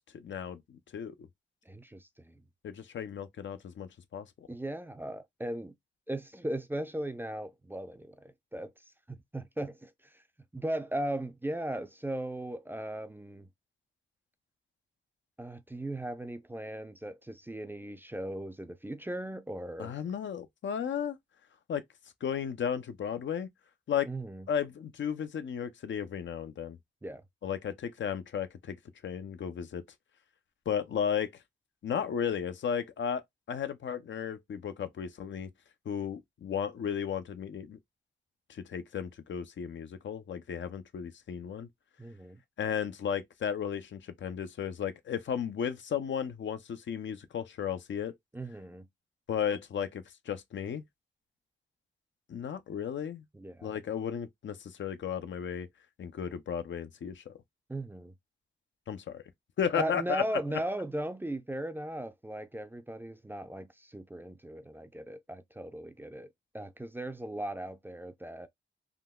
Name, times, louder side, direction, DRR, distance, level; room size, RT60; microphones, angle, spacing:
voice 1, 0.1-1.1 2.6-4.5 19.8-21.2 21.7-21.8 22.2-23.5 23.9-24.1 24.5-26.8 27.4-28.8 29.0-29.8 30.7-31.3 31.8-33.2 33.5-35.5 35.9-37.8 38.5-41.7 42.6-48.1 49.3-50.8 52.3-53.2 53.6-55.7 56.0-57.3 58.9-59.2 59.6-60.2, left 8 dB, 70° left, 0.5 m, -34 dB
voice 2, 1.7-2.4 4.5-5.7 6.1-8.7 9.1-10.2 10.5-13.5 15.4-20.0 24.1-24.5 27.0-27.2 42.0-42.4 48.3-48.9 53.3-53.7 57.7-58.1 59.8-66.3 66.5-68.5, right 1 dB, 10° right, 0.4 m, -38 dB
3.7 x 2.2 x 2.2 m
cardioid pair, 70°, 20 cm